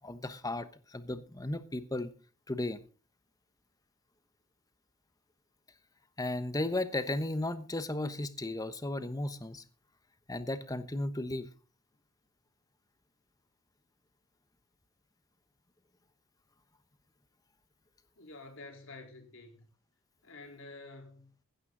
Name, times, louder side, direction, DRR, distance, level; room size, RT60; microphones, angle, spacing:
voice 1, 0.0-2.1 2.5-2.8 6.2-9.6 10.3-11.5, left 2 dB, 15° left, 1.1 m, -35 dB
voice 2, 18.2-19.7 20.2-21.3, left 2 dB, 65° left, 3.8 m, -49 dB
15.5 x 12.5 x 3.9 m
head